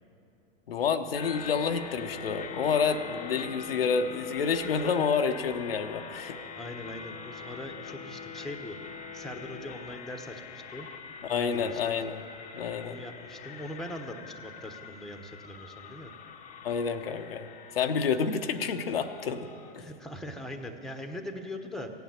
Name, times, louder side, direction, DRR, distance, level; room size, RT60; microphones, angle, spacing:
voice 1, 0.7-6.4 11.3-12.2 12.5-13.0 16.6-17.5 17.8-19.5 19.7-19.8, left 6 dB, 80° left, 7 dB, 0.9 m, -29 dB
sound 1, 1.1-19.7, left 6 dB, 25° left, 0.8 m, -44 dB
voice 2, 6.6-8.8 9.1-10.4 10.7-10.9 11.3-11.8 12.8-16.1 19.8-21.9, left 1 dB, ahead, 5 dB, 1.0 m, -41 dB
16.0 x 9.2 x 7.6 m, 2.8 s
hypercardioid pair, 105°, 29 cm